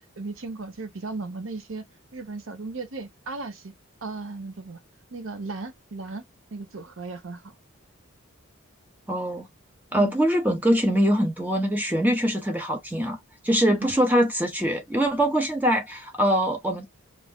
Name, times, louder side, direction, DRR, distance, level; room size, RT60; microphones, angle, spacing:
voice 1, 0.2-1.8 2.1-3.7 4.0-4.8 5.1-6.2 6.5-7.5 13.7-13.9, right 3 dB, 75° right, 0.8 m, -36 dB
voice 2, 9.1-9.5 9.9-13.2 13.4-16.9, equal, 10° right, 0.7 m, -23 dB
2.6 x 2.1 x 3.4 m
head